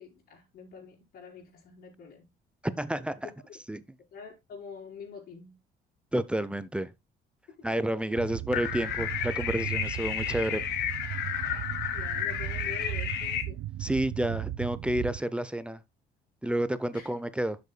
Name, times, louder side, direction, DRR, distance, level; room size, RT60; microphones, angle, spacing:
voice 1, 0.0-2.3 4.1-5.6 7.5-7.8 11.7-13.6 16.9-17.2, left 6 dB, 60° left, 4.4 m, -46 dB
voice 2, 2.6-3.3 3.7-3.8 6.1-6.9 7.6-10.6 13.8-15.8 16.4-17.6, right 1 dB, 5° right, 0.6 m, -30 dB
sound 1, 8.1-15.2, right 14 dB, 75° right, 0.6 m, -37 dB
sound 2, 8.5-13.4, left 10 dB, 80° left, 1.5 m, -32 dB
12.0 x 6.8 x 2.2 m
cardioid pair, 110°, 17 cm